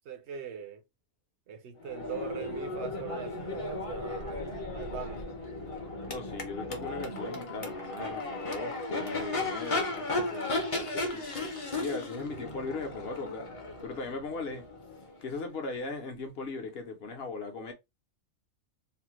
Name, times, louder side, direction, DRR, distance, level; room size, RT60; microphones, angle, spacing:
voice 1, 0.0-0.8 1.5-5.2, right 6 dB, 65° right, 0.9 m, -41 dB
Crowd / Race car auto racing / Accelerating revving vroom, 1.8-15.6, left 2 dB, 30° left, 0.6 m, -35 dB
voice 2, 6.1-11.3 11.8-13.6 13.8-14.7 15.2-17.7, left 3 dB, 55° left, 1.0 m, -38 dB
3.3 x 2.2 x 3.0 m
omnidirectional pair, 1.3 m